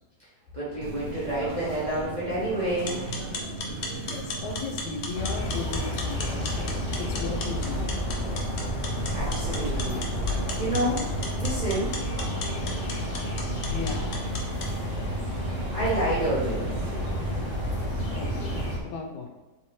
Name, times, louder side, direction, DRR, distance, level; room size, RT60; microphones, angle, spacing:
voice 1, 0.5-3.0 9.1-10.0 10.6-11.0 11.4-11.9 15.4-16.7, right 1 dB, 35° right, -9 dB, 0.7 m, -29 dB
sound 1, 0.8-18.8, right 1 dB, 90° right, 1.2 m, -36 dB
sound 2, 2.7-14.7, left 3 dB, 70° left, 0.6 m, -38 dB
voice 2, 4.1-6.6 7.0-7.9 13.7-14.1 18.2-19.3, left 4 dB, 85° left, 3 dB, 1.2 m, -36 dB
sound 3, 5.1-18.8, left 1 dB, 35° left, 0.9 m, -31 dB
3.3 x 2.8 x 3.0 m, 1.2 s
omnidirectional pair, 1.8 m